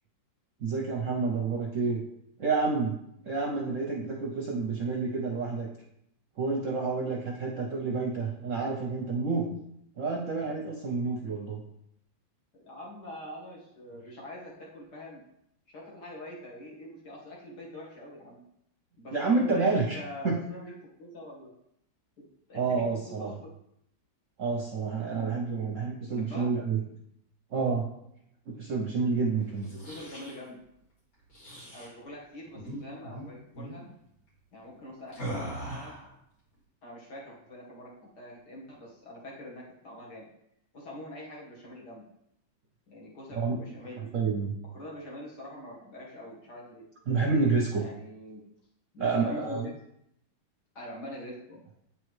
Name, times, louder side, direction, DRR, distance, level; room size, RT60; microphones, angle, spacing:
voice 1, 0.6-2.0 2.4-2.9 3.2-5.7 6.4-9.6 10.0-11.6 19.1-20.0 20.2-20.4 22.5-23.3 24.4-26.8 27.5-27.9 28.5-29.7 43.3-43.5 44.1-44.6 47.1-47.9 49.0-49.7, right 4 dB, 55° right, -1 dB, 0.9 m, -29 dB
voice 2, 12.5-15.2 15.7-18.4 19.0-20.7 21.0-21.5 22.2-23.5 26.1-26.5 29.7-30.6 31.7-33.8 34.5-35.9 36.8-37.9 38.2-40.3 40.7-42.0 42.9-44.1 44.7-46.9 47.8-48.4 48.9-49.7 50.8-51.6, left 1 dB, 60° left, -3 dB, 2.1 m, -44 dB
sound 1, 29.5-30.4 31.3-31.9 32.5-32.8 33.0-33.2 33.5-33.8 35.1-36.1, right 1 dB, 85° left, 3.3 m, -39 dB
8.4 x 4.7 x 3.2 m, 0.77 s
omnidirectional pair, 2.0 m